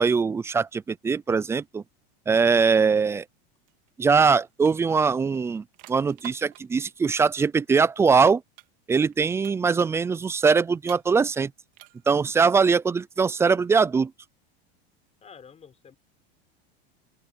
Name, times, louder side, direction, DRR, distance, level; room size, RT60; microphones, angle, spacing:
voice 1, 0.0-1.8 2.3-3.2 4.0-8.4 8.9-11.5 12.1-14.1, right 5 dB, 10° right, 0.3 m, -22 dB
sound 1, 3.7-3.9 4.1-6.9 8.6-9.1 9.4-10.0 10.8-11.4 11.7-12.3, right 22 dB, 55° right, 2.1 m, -49 dB
voice 2, 15.2-16.0, left 6 dB, 20° left, 5.7 m, -48 dB
open air
supercardioid pair, 135°, 31 cm